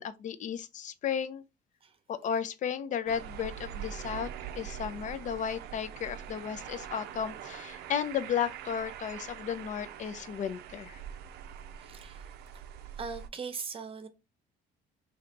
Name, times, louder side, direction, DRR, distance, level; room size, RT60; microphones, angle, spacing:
voice 1, 0.0-1.4 2.1-4.3 4.6-11.0, left 8 dB, 45° left, 0.5 m, -34 dB
sound 1, 3.1-13.3, right 9 dB, 75° right, 0.4 m, -43 dB
voice 2, 11.8-12.6 13.0-14.1, right 5 dB, 35° right, 0.8 m, -41 dB
3.2 x 2.8 x 3.8 m
cardioid pair, 110°, 17 cm